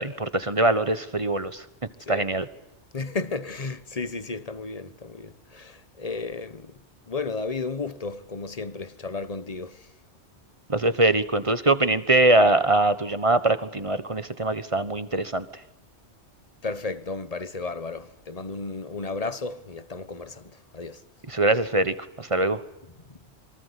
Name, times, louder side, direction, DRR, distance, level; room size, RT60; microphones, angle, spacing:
voice 1, 0.0-1.6 2.1-2.5 10.7-15.5 21.3-22.6, right 2 dB, 30° right, 1.3 m, -22 dB
voice 2, 2.9-6.7 7.1-9.8 16.6-21.0, left 3 dB, 35° left, 1.2 m, -33 dB
27.0 x 24.0 x 8.3 m
omnidirectional pair, 1.2 m